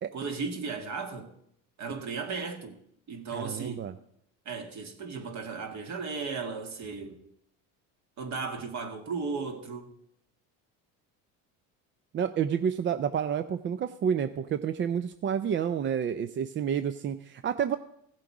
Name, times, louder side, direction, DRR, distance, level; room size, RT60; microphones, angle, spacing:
voice 1, 0.1-1.3 1.8-2.8 3.1-3.8 4.5-7.2 8.2-9.9, right 4 dB, 50° right, 2.1 m, -35 dB
voice 2, 3.3-3.9 12.1-17.8, right 8 dB, 30° right, 0.5 m, -29 dB
16.0 x 7.5 x 4.9 m
supercardioid pair, 105°, 37 cm